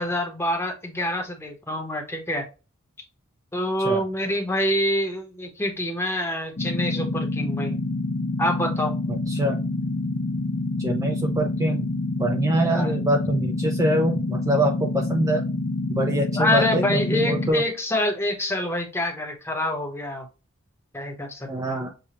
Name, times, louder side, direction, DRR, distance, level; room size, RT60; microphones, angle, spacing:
voice 1, 0.0-2.4 3.5-7.8 8.4-8.9 12.7-12.9 16.3-20.3 20.9-21.8, left 1 dB, 10° left, 2 dB, 0.9 m, -26 dB
sound 1, 6.6-17.5, left 2 dB, 50° left, 0.9 m, -27 dB
voice 2, 9.1-9.6 10.8-11.9 12.2-15.5 15.9-17.6 21.5-21.9, right 1 dB, 15° right, 3 dB, 0.4 m, -24 dB
6.7 x 2.3 x 2.9 m, 0.31 s
head